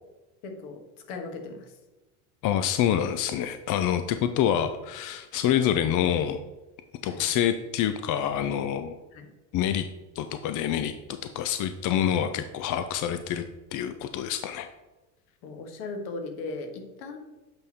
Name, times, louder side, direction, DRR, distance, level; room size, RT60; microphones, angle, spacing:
voice 1, 0.4-0.8 1.1-1.7 7.1-7.2 9.1-9.3 15.4-17.2, left 3 dB, 70° left, 4 dB, 1.5 m, -37 dB
voice 2, 2.4-6.4 7.0-9.0 9.5-9.9 10.2-10.9 11.3-13.4 13.7-14.7, left 10 dB, 45° left, 9 dB, 0.5 m, -26 dB
8.0 x 3.5 x 4.2 m, 1.1 s
hypercardioid pair, 90°, 45 cm